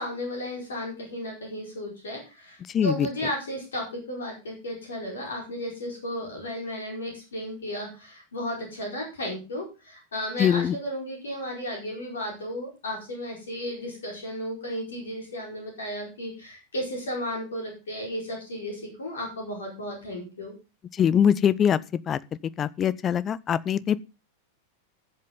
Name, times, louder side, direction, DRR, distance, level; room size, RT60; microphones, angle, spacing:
voice 1, 0.0-20.5, equal, 65° left, 4.6 m, -34 dB
voice 2, 2.7-3.1 10.4-10.8 21.0-21.8 22.1-22.2 22.6-24.0, left 8 dB, 25° left, 0.6 m, -22 dB
15.0 x 7.5 x 3.8 m
figure-of-eight pair, 90°, 0 cm